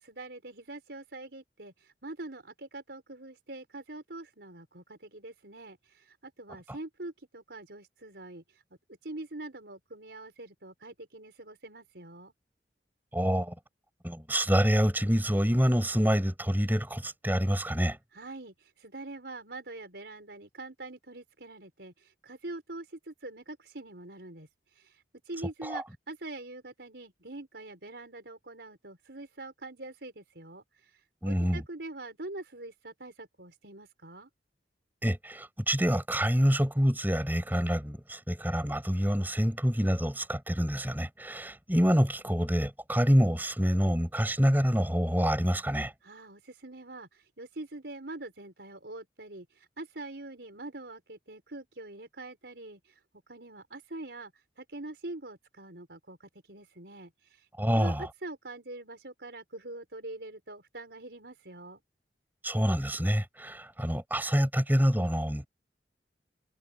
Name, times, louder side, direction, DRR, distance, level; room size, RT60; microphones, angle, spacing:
voice 1, 0.0-8.6 9.0-12.3 18.1-34.3 46.0-53.0 53.3-54.3 54.6-57.5 57.7-61.8, right 2 dB, 75° right, 4.6 m, -44 dB
voice 2, 13.1-13.5 14.0-18.0 25.6-25.8 31.2-31.6 35.0-45.9 57.6-58.1 62.4-65.5, equal, 10° right, 5.3 m, -27 dB
head